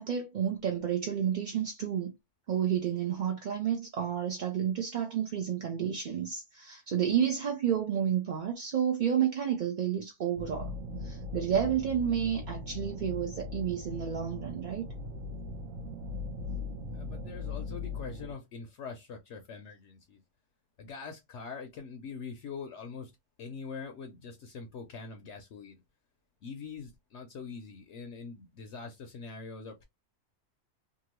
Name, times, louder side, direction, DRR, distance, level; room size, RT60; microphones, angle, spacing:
voice 1, 0.0-2.1 2.5-10.7 11.0-14.9, right 9 dB, 55° right, 0.5 m, -30 dB
sound 1, 10.4-18.3, left 3 dB, 75° right, 1.0 m, -39 dB
voice 2, 16.9-20.2 20.8-23.1 23.4-25.8 26.4-29.8, left 5 dB, 65° left, 0.8 m, -43 dB
2.8 x 2.4 x 3.0 m
omnidirectional pair, 1.4 m